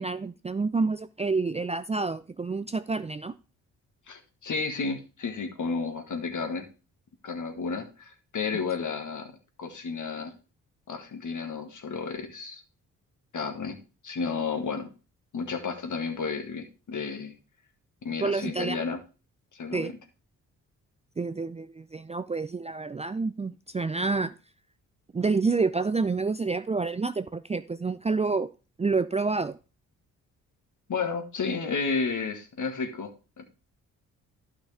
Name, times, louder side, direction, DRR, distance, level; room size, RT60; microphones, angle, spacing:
voice 1, 0.0-3.3 18.2-18.8 19.7-19.9 21.2-24.3 25.1-28.5 28.8-29.6, right 4 dB, 15° right, 0.5 m, -28 dB
voice 2, 4.1-6.7 7.2-9.3 9.6-10.3 10.9-12.6 13.3-13.8 14.0-14.9 15.3-17.3 18.0-19.0 19.5-19.9 30.9-33.5, left 4 dB, 50° left, 1.9 m, -32 dB
12.0 x 5.8 x 3.4 m
hypercardioid pair, 45°, 38 cm